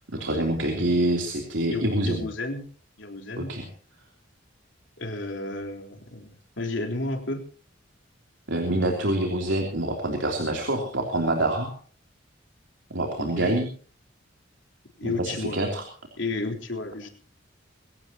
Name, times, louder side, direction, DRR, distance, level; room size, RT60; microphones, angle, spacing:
voice 1, 0.1-2.2 3.4-3.6 8.5-11.7 12.9-13.7 15.0-15.8, right 1 dB, 75° right, 1 dB, 3.3 m, -26 dB
voice 2, 1.7-2.6 3.0-3.5 5.0-7.4 13.2-13.6 15.0-15.6 16.2-17.1, left 2 dB, 70° left, 3 dB, 3.9 m, -32 dB
23.0 x 17.0 x 2.9 m, 0.44 s
head